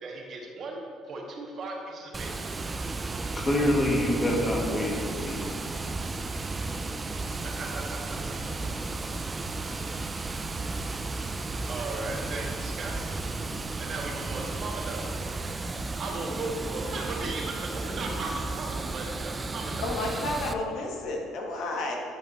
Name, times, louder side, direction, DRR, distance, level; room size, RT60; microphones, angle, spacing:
voice 1, 0.0-2.3 7.4-8.4 8.7-8.8 11.7-13.0 13.8-15.1 16.0-19.9, right 3 dB, 45° right, 0 dB, 1.4 m, -37 dB
Water, 2.1-20.5, right 3 dB, 20° right, 0.4 m, -34 dB
voice 2, 3.4-5.6, left 1 dB, 20° left, -1 dB, 1.7 m, -26 dB
voice 3, 19.8-22.0, left 2 dB, 65° left, 1 dB, 1.3 m, -31 dB
10.5 x 5.3 x 4.1 m, 2.5 s
cardioid pair, 120°, 0 cm